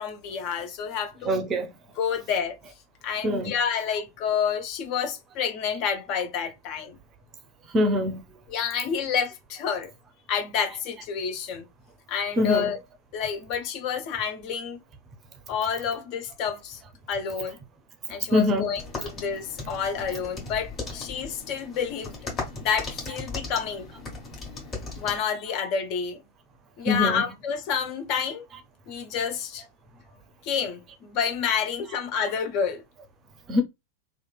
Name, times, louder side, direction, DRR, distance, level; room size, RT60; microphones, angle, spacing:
voice 1, 0.0-1.4 2.0-2.6 3.0-7.0 8.5-9.9 10.3-11.6 12.1-12.8 13.1-14.8 15.5-16.8 17.1-17.6 18.1-22.2 22.6-23.8 25.0-26.2 26.8-28.4 28.9-29.6 30.4-32.8, left 7 dB, 40° left, 0.6 m, -29 dB
voice 2, 1.2-1.7 3.2-3.5 7.7-8.2 12.4-12.7 18.3-18.6 26.9-27.2 33.5-33.6, left 1 dB, 25° right, 0.5 m, -23 dB
sound 1, 18.7-25.2, left 3 dB, 25° left, 1.3 m, -37 dB
2.9 x 2.4 x 2.2 m
figure-of-eight pair, 90°, 0 cm